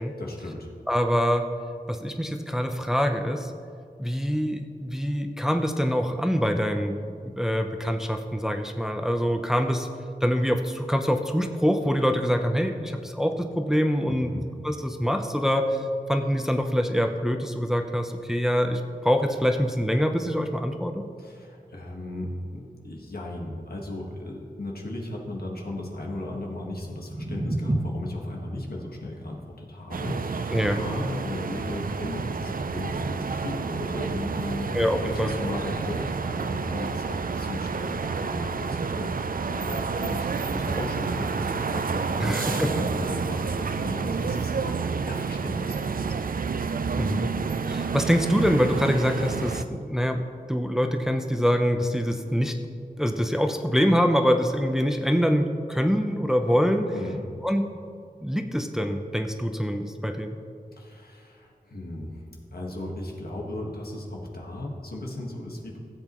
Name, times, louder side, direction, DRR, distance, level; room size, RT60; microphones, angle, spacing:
voice 1, 0.2-0.7 14.1-14.5 21.2-46.2 56.9-57.2 60.7-62.2 62.5-65.8, left 1 dB, 75° left, -1 dB, 1.6 m, -36 dB
voice 2, 0.9-1.5 1.9-3.5 4.0-9.9 10.2-14.3 14.6-15.8 16.1-21.0 30.5-30.8 34.7-35.3 42.2-42.7 47.0-47.3 47.7-52.6 53.0-56.9 57.4-57.6 58.2-60.4, equal, 5° right, 4 dB, 0.6 m, -25 dB
sound 1, 26.5-32.6, right 1 dB, 30° right, 0.9 m, -34 dB
sound 2, 29.9-49.6, right 5 dB, 65° right, 0.4 m, -29 dB
15.5 x 7.9 x 3.0 m, 2.2 s
wide cardioid pair, 70°, 16 cm